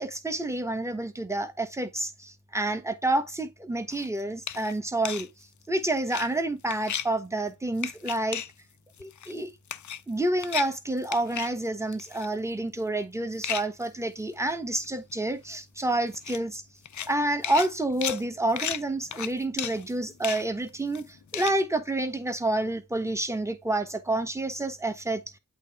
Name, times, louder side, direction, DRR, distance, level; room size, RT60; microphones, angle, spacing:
voice 1, 0.0-5.3 5.7-8.4 9.0-9.5 10.1-16.6 17.0-25.2, right 2 dB, 5° right, 1.2 m, -29 dB
sound 1, 3.9-4.1 4.5-4.7 5.0-5.3 6.0-6.3 6.7-7.1 7.8-8.5 9.0-9.4 9.7-10.1 10.4-10.7 11.0-11.5 11.9-12.3 13.4-13.8 14.5-14.6 14.8-14.9 15.1-15.2 16.1-16.4 16.8-17.1 17.4-21.6, left 9 dB, 45° left, 0.5 m, -34 dB
8.3 x 3.4 x 3.6 m
cardioid pair, 40°, 41 cm